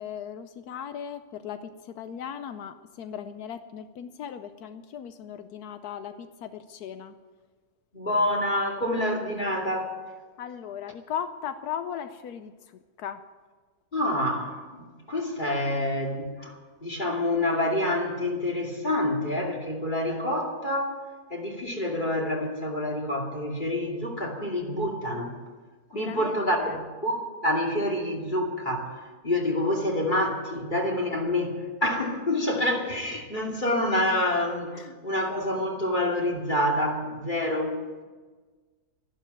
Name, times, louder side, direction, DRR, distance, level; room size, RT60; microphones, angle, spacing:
voice 1, 0.0-7.1 10.4-13.2 25.9-26.8 30.5-30.6 33.1-33.2 34.7-35.0, left 8 dB, 85° left, 10 dB, 1.2 m, -38 dB
voice 2, 7.9-10.0 13.9-21.0 21.3-25.3 25.9-31.6 31.8-37.8, left 1 dB, 30° left, 0 dB, 2.8 m, -27 dB
13.0 x 11.5 x 9.2 m, 1.4 s
omnidirectional pair, 1.6 m